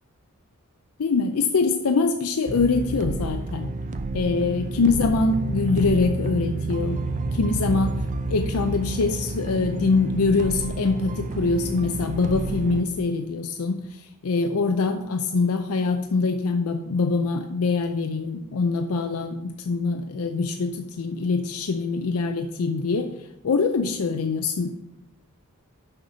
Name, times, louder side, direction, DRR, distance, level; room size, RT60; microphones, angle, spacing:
voice 1, 1.0-3.7 4.1-7.0 7.3-8.0 8.3-23.1 23.4-24.8, left 4 dB, 70° left, 6 dB, 0.5 m, -24 dB
sound 1, 2.5-12.8, right 2 dB, 35° right, 0.5 m, -29 dB
6.5 x 5.8 x 6.0 m, 0.87 s
head